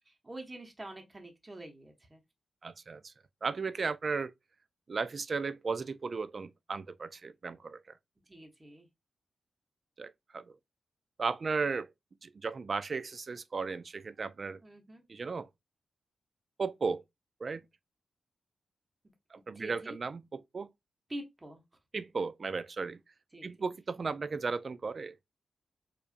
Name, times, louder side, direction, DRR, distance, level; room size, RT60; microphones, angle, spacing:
voice 1, 0.1-2.2 8.3-8.9 14.6-15.0 19.5-20.0 21.1-21.6 23.3-23.5, right 1 dB, 20° right, 0.9 m, -46 dB
voice 2, 2.6-3.1 3.4-4.3 4.9-7.8 10.0-10.4 11.2-11.9 12.2-14.6 15.1-15.5 16.6-17.0 17.4-17.6 19.3-20.7 21.9-23.0 23.4-25.2, right 4 dB, 45° right, 0.3 m, -35 dB
4.7 x 2.4 x 2.5 m
wide cardioid pair, 120°, 0 cm